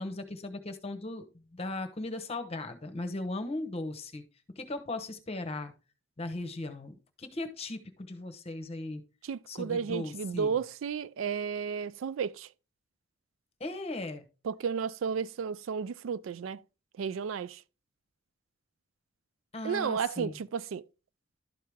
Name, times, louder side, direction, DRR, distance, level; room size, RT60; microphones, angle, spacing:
voice 1, 0.0-4.2 4.6-5.7 6.2-9.0 9.5-10.6 13.6-14.2 19.5-20.3, left 2 dB, 30° left, 0.9 m, -37 dB
voice 2, 9.2-12.5 14.4-16.6 17.0-17.6 19.6-20.8, right 6 dB, 75° right, 0.4 m, -33 dB
12.0 x 4.7 x 3.5 m
head